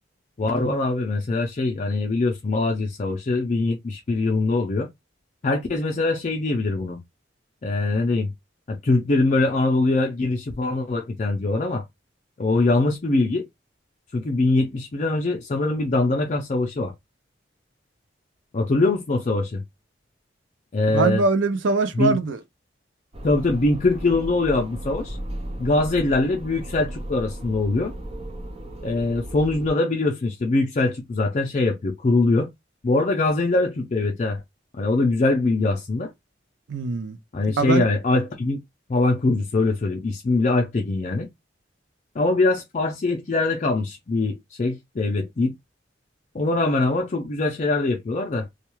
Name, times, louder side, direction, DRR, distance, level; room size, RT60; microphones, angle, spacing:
voice 1, 0.4-4.9 5.4-7.0 7.6-8.3 8.7-11.8 12.4-13.5 14.1-16.9 18.5-19.6 20.7-21.2 21.9-22.2 23.2-25.2 25.6-27.9 28.8-32.5 32.8-34.4 34.7-36.1 37.3-38.6 38.9-41.3 42.2-45.5 46.3-48.5, left 2 dB, 40° left, 0.4 m, -22 dB
voice 2, 20.9-22.4 36.7-37.2 37.6-37.8, right 3 dB, 80° right, 0.5 m, -22 dB
sound 1, 23.1-29.7, right 1 dB, 30° right, 0.5 m, -35 dB
2.3 x 2.3 x 2.9 m
head